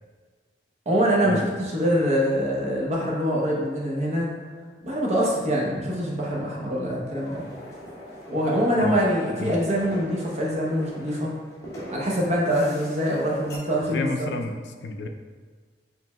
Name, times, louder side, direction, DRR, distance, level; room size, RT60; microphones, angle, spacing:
voice 1, 0.9-4.3 4.8-7.4 8.3-11.3 11.9-14.1, equal, 40° right, -3 dB, 0.8 m, -24 dB
sound 1, 7.2-13.6, equal, 20° left, 1.0 m, -41 dB
voice 2, 13.9-15.1, left 2 dB, 80° left, 5 dB, 0.4 m, -30 dB
5.1 x 3.3 x 2.2 m, 1.5 s
head